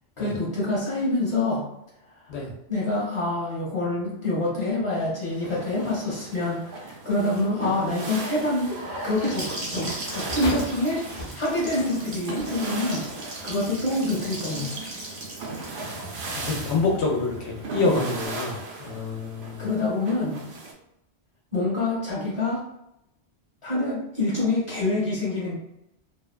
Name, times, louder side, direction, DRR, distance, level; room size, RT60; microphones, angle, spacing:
voice 1, 0.2-1.7 2.7-8.8 9.0-11.0 11.3-13.1 13.4-14.8 17.8-18.0 19.6-20.4 21.5-22.6 23.6-25.6, left 2 dB, 30° left, -6 dB, 1.0 m, -26 dB
sound 1, 5.2-20.7, right 3 dB, 60° right, 0.7 m, -38 dB
Gurgling / Sink (filling or washing) / Bathtub (filling or washing), 8.4-18.2, right 2 dB, 75° right, 1.0 m, -38 dB
sound 2, 10.3-12.5 13.3-13.4, left 1 dB, 50° left, 0.6 m, -36 dB
voice 2, 16.4-19.6, left 3 dB, 80° left, -1 dB, 0.9 m, -27 dB
2.5 x 2.1 x 2.3 m, 0.84 s
omnidirectional pair, 1.1 m